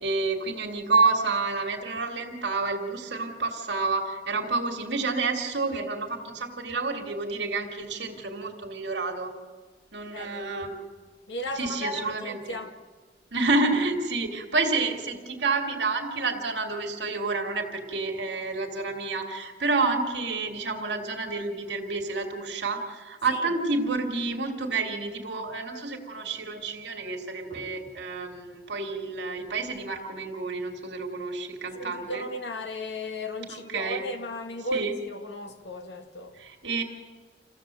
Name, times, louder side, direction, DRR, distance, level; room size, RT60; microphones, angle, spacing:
voice 1, 0.0-9.3 9.9-10.8 11.6-12.4 13.3-32.3 33.7-34.0 34.7-34.9 36.4-36.8, right 3 dB, 80° right, 2.6 m, -29 dB
voice 2, 10.1-10.5 11.3-12.7 23.3-23.5 31.8-36.4, left 1 dB, 75° left, 2.0 m, -35 dB
27.5 x 15.5 x 7.7 m
head